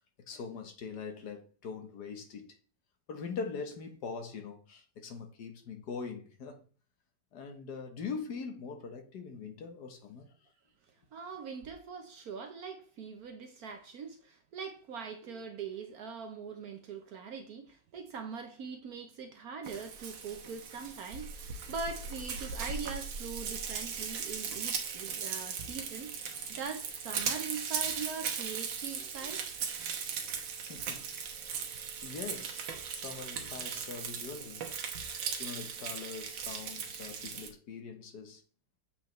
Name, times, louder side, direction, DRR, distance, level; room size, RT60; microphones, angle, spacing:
voice 1, 0.3-2.6 3.1-6.6 7.3-10.3 25.2-25.3 30.7-31.1 32.0-34.7 35.4-38.4, left 5 dB, 60° left, 1.6 m, -42 dB
voice 2, 11.1-29.4, right 5 dB, 60° right, 1.1 m, -42 dB
Frying (food), 19.6-37.5, right 6 dB, 85° right, 1.8 m, -38 dB
7.7 x 4.9 x 3.1 m
omnidirectional pair, 2.0 m